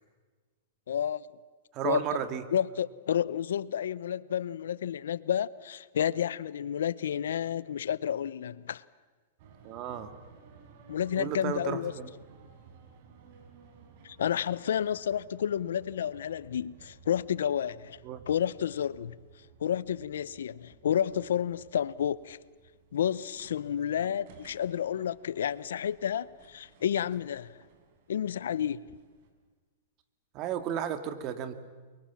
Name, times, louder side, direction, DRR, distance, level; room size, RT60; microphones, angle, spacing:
voice 1, 0.9-1.2 1.8-2.0 2.5-8.8 10.9-11.9 14.0-18.0 18.3-19.1 19.6-22.4 22.9-27.6 28.1-28.9, left 9 dB, 90° left, 0.7 m, -30 dB
voice 2, 1.7-2.4 9.6-10.1 11.2-12.1 18.0-18.2 24.0-24.1 30.3-31.5, right 9 dB, 35° right, 2.1 m, -33 dB
sound 1, 9.4-29.3, right 6 dB, 55° right, 4.4 m, -57 dB
30.0 x 23.5 x 7.2 m
supercardioid pair, 150°, 0 cm